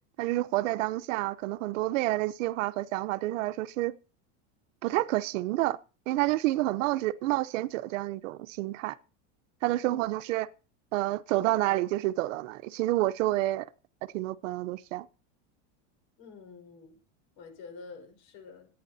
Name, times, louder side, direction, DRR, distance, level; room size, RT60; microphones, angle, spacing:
voice 1, 0.2-3.9 4.8-5.8 6.1-9.0 9.6-10.5 10.9-13.7 14.1-15.1, right 17 dB, 80° right, 0.8 m, -29 dB
voice 2, 16.2-17.0 17.4-18.7, left 5 dB, 55° left, 4.7 m, -48 dB
26.5 x 9.4 x 2.7 m
supercardioid pair, 145°, 37 cm